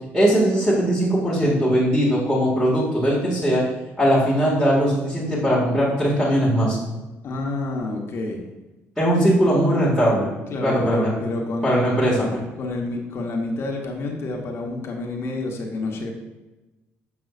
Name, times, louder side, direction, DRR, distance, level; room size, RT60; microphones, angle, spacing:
voice 1, 0.1-3.6 4.0-6.8 9.0-10.3 10.6-11.1 11.6-12.4, equal, ahead, -8 dB, 1.8 m, -20 dB
voice 2, 7.2-8.4 10.5-11.8 12.1-12.3 12.6-16.1, left 2 dB, 55° left, 1 dB, 1.1 m, -28 dB
7.6 x 5.4 x 2.4 m, 1.1 s
cardioid pair, 90°, 5 cm